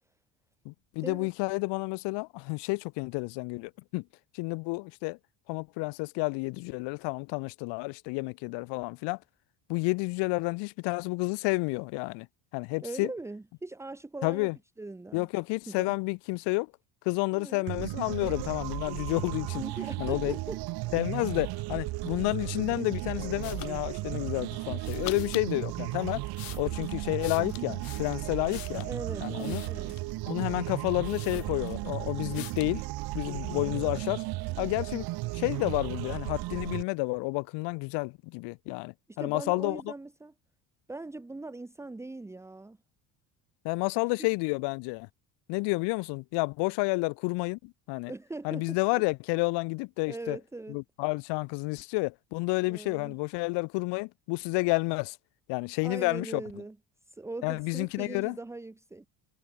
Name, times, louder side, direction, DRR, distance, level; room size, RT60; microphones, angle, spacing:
voice 1, 0.6-4.0 4.3-5.2 5.5-9.2 9.7-12.3 12.5-13.1 14.2-14.5 15.1-16.7 17.0-19.6 20.0-20.4 20.9-26.3 26.6-28.9 29.2-29.6 30.3-32.8 33.1-34.2 34.6-35.1 35.3-39.8 43.6-45.1 45.5-48.1 48.4-50.4 50.7-55.2 55.5-56.4 57.4-58.4, left 27 dB, 80° left, 1.5 m, -30 dB
voice 2, 12.8-14.5 14.8-15.3 15.7-15.9 17.3-17.7 19.6-20.6 21.3-21.4 28.9-30.0 39.1-40.3 40.9-42.8 44.2-44.3 48.1-49.0 50.1-50.8 52.7-53.1 55.8-56.8 57.1-59.1, right 2 dB, 5° right, 1.7 m, -41 dB
sound 1, 17.7-36.8, right 20 dB, 65° right, 4.3 m, -35 dB
sound 2, 23.4-23.7 24.8-25.5 26.1-28.9 29.4-30.2 30.7-30.8 31.0-31.9 32.3-32.8, left 19 dB, 60° left, 2.2 m, -44 dB
cardioid pair, 170°, 40 cm